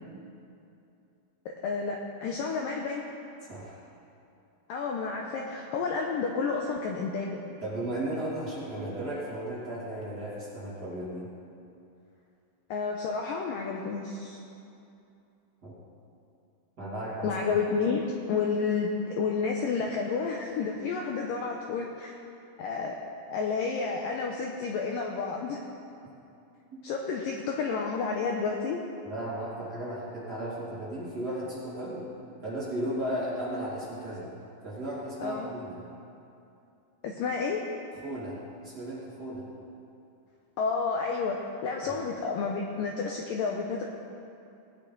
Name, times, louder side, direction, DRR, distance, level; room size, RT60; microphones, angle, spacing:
voice 1, 1.6-3.1 4.7-7.4 12.7-14.4 17.2-22.1 22.6-23.0 23.3-25.6 26.8-28.8 35.2-35.5 37.0-37.6 40.6-43.8, left 5 dB, 85° left, 0 dB, 1.9 m, -30 dB
voice 2, 3.4-3.8 7.6-11.3 15.6-15.7 16.8-17.3 29.0-32.1 32.4-34.3 34.6-35.8 38.0-38.4 38.6-39.4 41.9-42.0, right 1 dB, 30° right, -9 dB, 2.5 m, -35 dB
19.0 x 9.2 x 3.9 m, 2.7 s
omnidirectional pair, 4.9 m